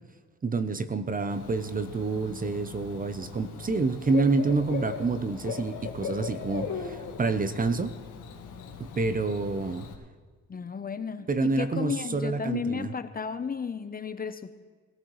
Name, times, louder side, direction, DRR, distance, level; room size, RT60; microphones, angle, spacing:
voice 1, 0.4-8.0 8.8-9.9 11.3-12.9, right 3 dB, 30° right, 11 dB, 0.8 m, -28 dB
Bird / Cricket, 1.3-9.9, left 6 dB, 80° left, 1.8 m, -39 dB
voice 2, 10.5-14.5, left 6 dB, 30° left, 10 dB, 0.8 m, -33 dB
21.5 x 15.0 x 3.2 m, 1.4 s
cardioid pair, 90°, 30 cm